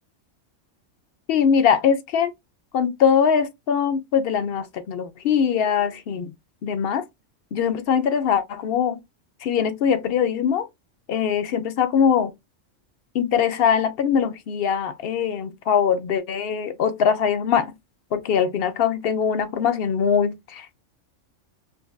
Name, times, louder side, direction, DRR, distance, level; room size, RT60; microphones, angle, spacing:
voice 1, 1.3-2.3 2.7-6.3 6.6-7.0 7.5-9.0 9.4-10.7 11.1-12.3 13.1-17.7 18.1-20.7, left 7 dB, 60° left, 0.7 m, -22 dB
5.1 x 2.4 x 2.3 m
omnidirectional pair, 1.3 m